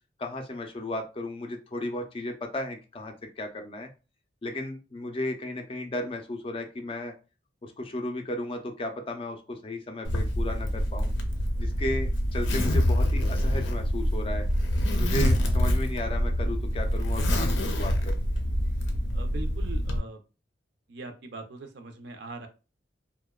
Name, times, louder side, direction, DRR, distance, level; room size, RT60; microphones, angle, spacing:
voice 1, 0.2-3.9 4.4-7.1 7.6-11.1 11.6-14.5 14.9-18.2, left 1 dB, 30° left, 4 dB, 0.4 m, -35 dB
Zipper (clothing), 10.1-20.0, equal, 80° left, 0.5 m, -26 dB
voice 2, 19.1-20.2 20.9-22.5, right 2 dB, 65° right, 6 dB, 0.5 m, -41 dB
2.7 x 2.1 x 2.2 m, 0.31 s
head